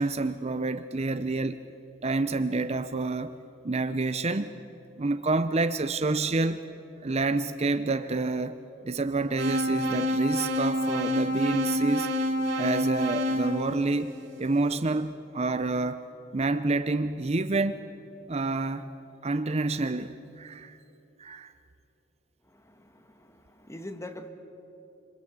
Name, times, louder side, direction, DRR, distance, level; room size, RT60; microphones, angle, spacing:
voice 1, 0.0-1.6 2.0-3.4 3.6-4.6 5.0-6.7 7.0-12.1 12.6-16.0 16.3-17.8 18.3-18.9 19.2-20.8 21.2-21.5, right 3 dB, 35° right, 11 dB, 0.6 m, -28 dB
sound 1, 9.4-14.5, equal, 65° right, 3.7 m, -28 dB
voice 2, 22.6-24.3, left 1 dB, 15° left, 8 dB, 1.5 m, -43 dB
26.5 x 26.0 x 8.1 m, 2.8 s
head